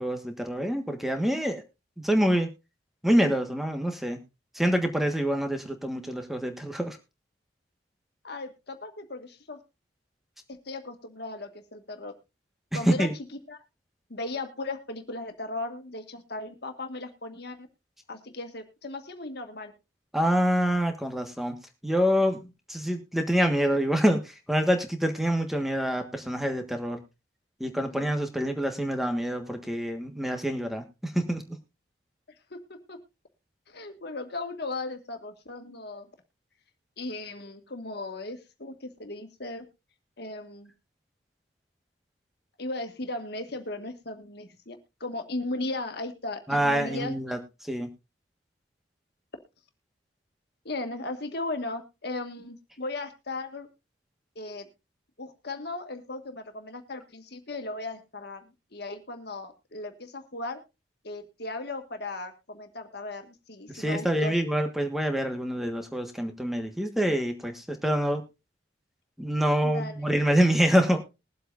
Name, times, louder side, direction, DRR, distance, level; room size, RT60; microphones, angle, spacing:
voice 1, 0.0-1.6 2.0-2.5 3.0-4.2 4.5-7.0 12.7-13.1 20.1-21.6 21.8-27.0 27.6-31.6 46.5-47.9 63.7-68.2 69.2-71.0, equal, ahead, 5 dB, 1.4 m, -26 dB
voice 2, 8.2-9.6 10.5-12.1 12.7-13.1 13.5-13.6 14.1-17.7 18.1-19.7 27.9-28.2 32.5-33.0 33.7-36.1 37.0-39.6 40.2-40.7 42.6-47.1 50.7-53.7 54.4-54.7 55.2-60.6 61.0-64.4 69.6-70.0, left 2 dB, 55° left, 6 dB, 1.7 m, -37 dB
21.5 x 7.8 x 2.6 m, 0.28 s
head